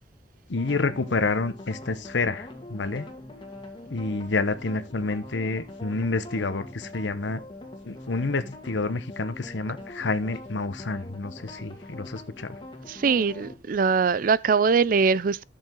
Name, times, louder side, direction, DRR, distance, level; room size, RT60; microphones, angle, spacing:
voice 1, 0.5-3.1 3.9-7.4 7.8-12.6, left 3 dB, 85° left, 0.9 m, -28 dB
sound 1, 0.5-13.6, left 1 dB, 25° left, 2.0 m, -43 dB
voice 2, 12.9-15.4, right 5 dB, 50° right, 0.4 m, -22 dB
11.0 x 6.7 x 3.7 m
head